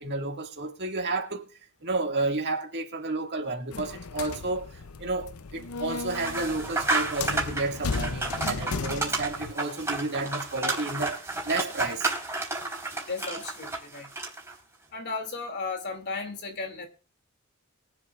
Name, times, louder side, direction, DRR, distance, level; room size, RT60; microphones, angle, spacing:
voice 1, 0.0-1.5 1.8-12.1, right 3 dB, 50° right, 2.0 m, -31 dB
sound 1, 3.7-9.5, left 4 dB, 85° left, 0.7 m, -35 dB
sound 2, 6.1-14.5, right 3 dB, 10° right, 4.2 m, -31 dB
voice 2, 13.0-14.1 14.9-16.9, left 3 dB, 50° left, 2.6 m, -35 dB
23.5 x 7.9 x 2.5 m
head